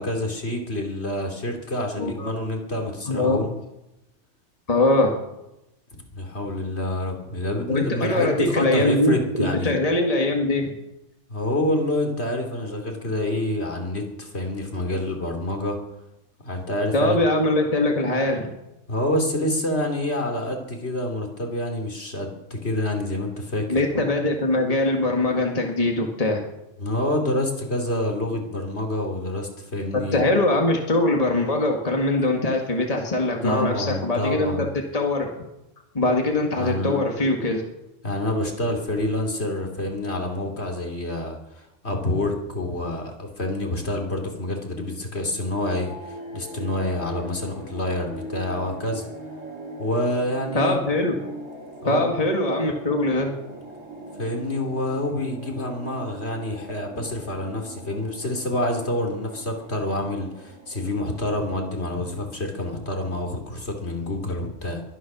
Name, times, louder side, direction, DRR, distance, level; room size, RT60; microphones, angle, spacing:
voice 1, 0.0-3.5 5.9-9.7 11.3-15.8 16.4-17.2 18.9-23.8 26.8-30.3 33.4-34.7 36.5-37.1 38.0-49.1 49.8-50.8 51.8-52.1 54.2-64.8, left 1 dB, 60° left, 3 dB, 3.1 m, -27 dB
voice 2, 2.0-2.3 3.1-3.5 4.7-5.1 7.7-10.7 16.9-18.5 23.7-26.4 30.1-34.7 34.9-35.3 35.9-37.6 50.5-51.1 51.9-53.3, left 2 dB, 30° left, 1 dB, 2.1 m, -22 dB
sound 1, 45.5-62.0, right 1 dB, 85° right, 3.7 m, -41 dB
22.5 x 10.0 x 6.2 m, 0.93 s
omnidirectional pair, 1.3 m